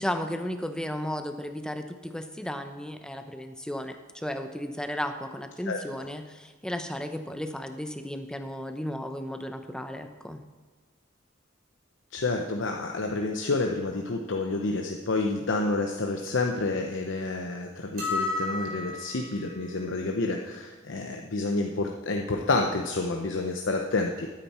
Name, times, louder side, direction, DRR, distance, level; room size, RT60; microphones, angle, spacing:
voice 1, 0.0-10.4, equal, 5° left, 7 dB, 0.7 m, -34 dB
voice 2, 12.1-24.3, left 3 dB, 75° left, 2 dB, 0.8 m, -29 dB
sound 1, 18.0-19.3, left 3 dB, 50° right, 3.7 m, -31 dB
13.0 x 9.1 x 4.3 m, 1.3 s
head